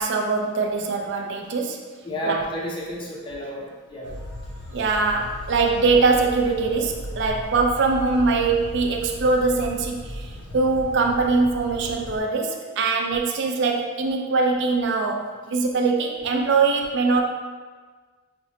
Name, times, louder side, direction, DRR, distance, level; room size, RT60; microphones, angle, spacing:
voice 1, 0.0-1.8 2.2-2.4 4.7-17.2, right 4 dB, 50° right, 1 dB, 0.3 m, -22 dB
voice 2, 2.0-4.2 8.6-9.0 10.3-10.6 11.8-12.2, equal, 20° left, -2 dB, 0.5 m, -33 dB
sound 1, 4.0-12.2, equal, 85° left, 0.6 m, -36 dB
5.8 x 2.1 x 2.7 m, 1.4 s
head